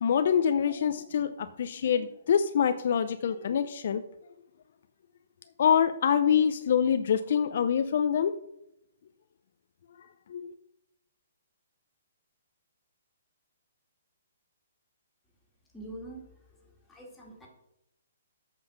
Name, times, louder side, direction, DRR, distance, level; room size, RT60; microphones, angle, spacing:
voice 1, 0.0-4.0 5.6-8.3 10.3-10.5, left 8 dB, 55° left, 11 dB, 0.5 m, -25 dB
voice 2, 15.7-16.2 16.5-16.6 16.9-17.5, right 1 dB, 5° left, -2 dB, 2.1 m, -44 dB
8.0 x 5.5 x 5.7 m, 0.84 s
hypercardioid pair, 155°, 0 cm